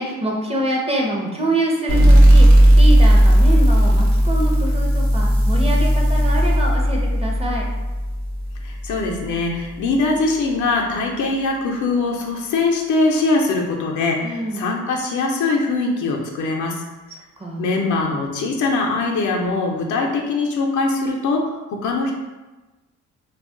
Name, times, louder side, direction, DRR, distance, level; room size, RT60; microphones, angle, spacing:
voice 1, 0.0-7.7 14.2-14.7 17.4-17.7, right 1 dB, 20° right, -1 dB, 0.6 m, -25 dB
sound 1, 1.9-9.2, equal, 65° right, 0.8 m, -14 dB
voice 2, 8.6-16.8 17.6-22.1, left 3 dB, 75° left, 0 dB, 0.6 m, -22 dB
2.3 x 2.1 x 3.6 m, 1.1 s
cardioid pair, 90°, 30 cm